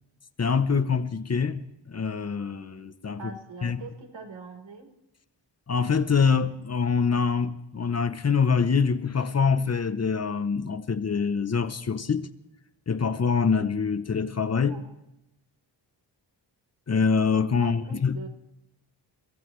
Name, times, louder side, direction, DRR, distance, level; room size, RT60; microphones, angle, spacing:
voice 1, 0.4-1.6 1.9-3.2 3.6-3.8 5.7-12.3 12.9-14.8 16.9-18.2, left 5 dB, 35° left, 0.7 m, -25 dB
voice 2, 3.2-4.9 14.6-14.9 17.6-18.3, right 4 dB, 90° right, 3.7 m, -42 dB
29.5 x 16.0 x 3.1 m
wide cardioid pair, 180°, 44 cm